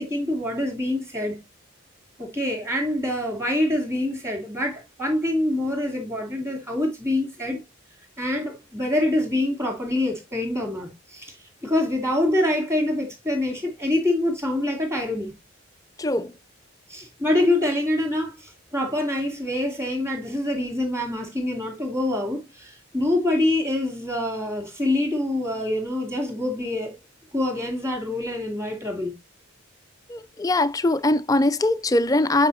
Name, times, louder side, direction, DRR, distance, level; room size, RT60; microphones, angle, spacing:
voice 1, 0.0-1.4 2.2-7.6 8.2-11.3 11.6-15.3 16.9-27.0 27.3-29.1, left 1 dB, 15° right, 2.4 m, -25 dB
voice 2, 16.0-16.3 30.1-32.5, left 2 dB, 15° left, 0.4 m, -21 dB
8.3 x 4.8 x 2.7 m
head